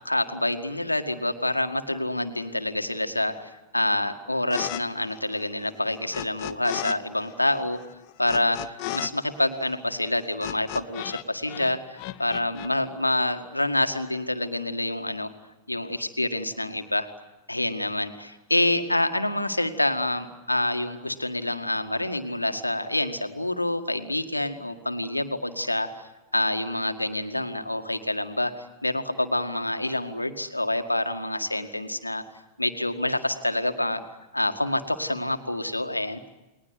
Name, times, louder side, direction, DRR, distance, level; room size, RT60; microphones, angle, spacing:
voice 1, 0.1-7.8 8.2-15.3 15.7-17.1 17.5-25.9 26.3-28.5 28.8-32.2 32.6-34.0 34.3-36.2, left 1 dB, 85° left, 7 dB, 1.9 m, -27 dB
sound 1, 4.5-4.8 5.1-7.0 7.2-11.2 11.5-12.7, left 17 dB, 45° left, 1.1 m, -35 dB
30.0 x 21.0 x 9.6 m, 1.1 s
figure-of-eight pair, 90°, 0 cm